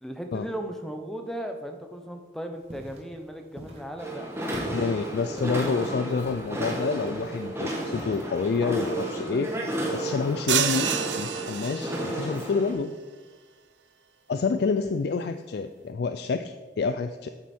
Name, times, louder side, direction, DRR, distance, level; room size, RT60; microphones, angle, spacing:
voice 1, 0.0-5.5, right 1 dB, ahead, 5 dB, 0.7 m, -37 dB
sound 1, 2.6-8.0, equal, 35° right, 1.4 m, -46 dB
sound 2, 4.0-12.7, right 1 dB, 15° right, 1.3 m, -32 dB
voice 2, 4.7-9.5 9.9-10.9 11.2-12.9 14.3-17.3, left 4 dB, 55° left, 9 dB, 0.3 m, -28 dB
sound 3, 10.5-12.3, right 8 dB, 70° right, 0.6 m, -28 dB
8.9 x 7.5 x 4.3 m, 1.4 s
head